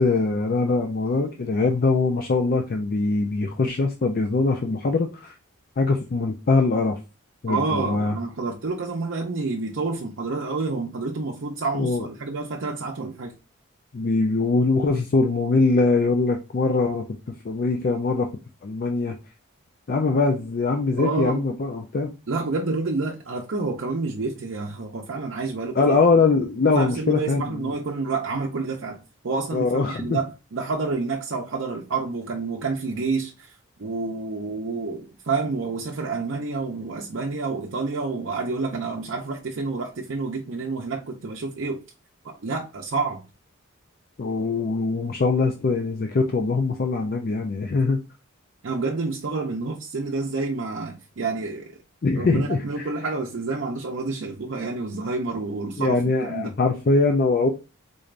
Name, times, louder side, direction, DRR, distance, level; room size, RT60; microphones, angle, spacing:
voice 1, 0.0-5.3 5.8-7.0 7.4-8.2 11.7-12.1 13.9-17.2 17.4-18.3 18.6-19.2 19.9-22.1 25.8-27.7 29.5-30.2 44.2-48.0 52.0-52.9 55.8-57.5, left 3 dB, 45° left, 0.4 m, -22 dB
voice 2, 7.5-13.3 21.0-21.4 22.3-26.0 26.7-41.8 42.2-43.2 48.6-51.8 52.2-56.6, right 3 dB, 65° right, 0.6 m, -29 dB
3.8 x 3.3 x 2.5 m
head